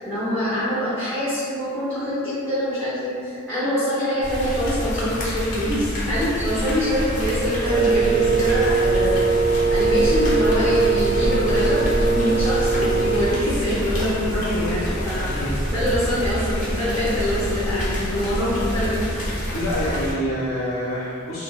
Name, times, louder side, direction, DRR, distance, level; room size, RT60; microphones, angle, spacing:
voice 1, 0.0-9.2 9.7-15.4 15.7-19.0, equal, 10° right, -13 dB, 0.6 m, -24 dB
sound 1, 4.2-20.1, equal, 40° left, 0.6 m, -27 dB
Wind instrument woodwind instrument, 7.6-13.4, right 4 dB, 90° right, 0.9 m, -21 dB
voice 2, 15.2-15.5 19.5-21.4, equal, 85° left, -8 dB, 0.4 m, -26 dB
2.6 x 2.1 x 2.3 m, 2.3 s
head